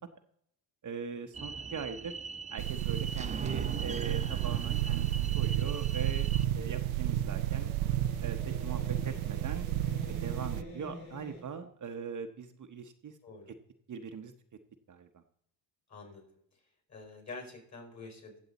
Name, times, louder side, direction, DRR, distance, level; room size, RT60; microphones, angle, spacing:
voice 1, 0.8-2.2 2.5-7.7 8.2-9.7 10.1-13.2 13.9-14.3 14.9-15.1, right 6 dB, 40° right, 6 dB, 1.0 m, -41 dB
sound 1, 1.3-6.5, right 5 dB, 15° right, 0.4 m, -40 dB
sound 2, 2.6-10.6, right 13 dB, 85° right, 0.6 m, -32 dB
sound 3, 5.6-11.4, left 1 dB, 85° left, 3.6 m, -48 dB
voice 2, 13.2-13.5 15.9-16.3 16.9-18.4, left 3 dB, 35° left, 2 dB, 5.0 m, -47 dB
16.0 x 7.2 x 4.1 m, 0.72 s
supercardioid pair, 75°, 46 cm